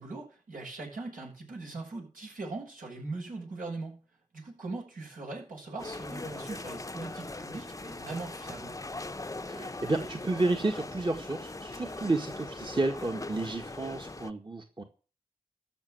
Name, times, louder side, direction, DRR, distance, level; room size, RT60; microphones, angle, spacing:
voice 1, 0.0-3.9 4.3-8.7, right 3 dB, 80° right, -3 dB, 7.2 m, -40 dB
sound 1, 5.8-14.3, left 2 dB, 25° left, 0.8 m, -40 dB
voice 2, 9.5-14.8, right 2 dB, 35° right, 3 dB, 1.8 m, -31 dB
13.5 x 6.2 x 7.9 m, 0.38 s
cardioid pair, 40°, 14 cm